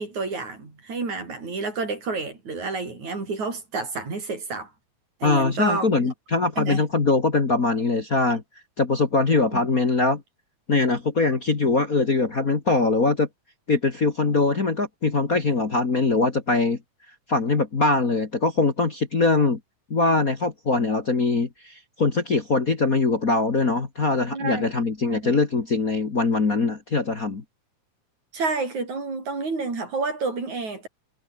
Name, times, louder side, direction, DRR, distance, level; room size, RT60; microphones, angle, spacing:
voice 1, 0.0-4.7 5.2-6.1 6.6-6.8 9.5-9.6 24.3-24.7 25.1-25.3 28.3-30.9, right 3 dB, 65° right, 7.9 m, -29 dB
voice 2, 5.2-8.4 8.8-10.2 10.7-13.3 13.7-16.8 17.3-19.6 19.9-27.4, left 3 dB, 30° left, 2.2 m, -22 dB
omnidirectional pair, 3.5 m